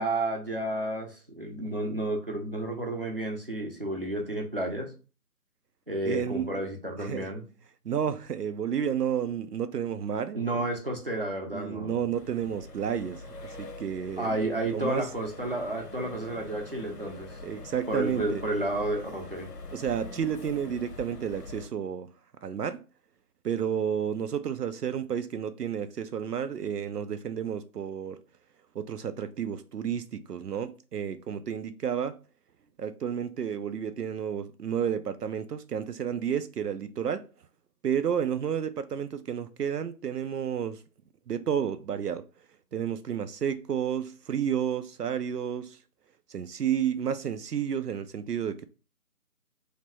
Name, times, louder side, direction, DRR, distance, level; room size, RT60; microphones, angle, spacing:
voice 1, 0.0-4.9 5.9-7.4 10.3-12.0 14.2-17.4 17.9-19.5, right 1 dB, 40° right, 0.6 m, -31 dB
voice 2, 6.0-6.5 7.0-7.3 7.9-10.4 11.5-13.2 13.6-14.4 14.7-15.1 17.4-18.4 19.7-22.1 22.4-22.8 23.4-28.2 28.7-32.2 32.8-37.3 37.8-40.8 41.3-42.2 42.7-45.8 46.3-48.7, right 8 dB, 80° right, 0.5 m, -31 dB
sound 1, 12.1-21.7, left 3 dB, 80° left, 0.9 m, -44 dB
3.3 x 2.8 x 4.1 m
figure-of-eight pair, 170°, 47 cm